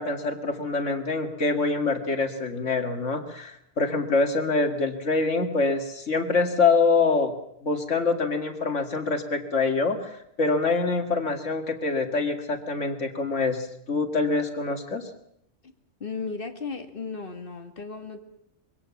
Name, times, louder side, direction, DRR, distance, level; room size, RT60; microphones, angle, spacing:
voice 1, 0.0-7.3 7.6-15.0, left 3 dB, 85° left, 5 dB, 2.4 m, -25 dB
voice 2, 16.0-18.2, left 4 dB, 50° left, 5 dB, 2.0 m, -35 dB
23.5 x 17.0 x 7.1 m, 0.75 s
omnidirectional pair, 1.2 m